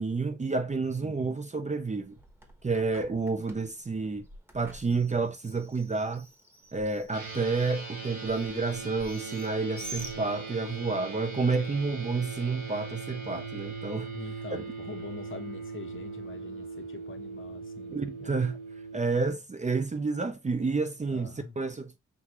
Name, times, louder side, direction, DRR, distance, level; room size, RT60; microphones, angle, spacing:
voice 1, 0.0-2.2 2.6-4.2 4.5-6.3 6.7-14.1 14.5-14.6 17.9-18.6 18.9-22.0, right 4 dB, 25° right, 0.6 m, -30 dB
voice 2, 1.0-1.4 14.1-18.4 21.1-21.6, left 5 dB, 40° left, 0.9 m, -44 dB
Bird, 1.9-10.8, right 1 dB, 5° right, 1.0 m, -49 dB
sound 1, 7.1-19.0, right 4 dB, 85° right, 2.7 m, -40 dB
6.1 x 2.5 x 2.9 m
cardioid pair, 85°, 30 cm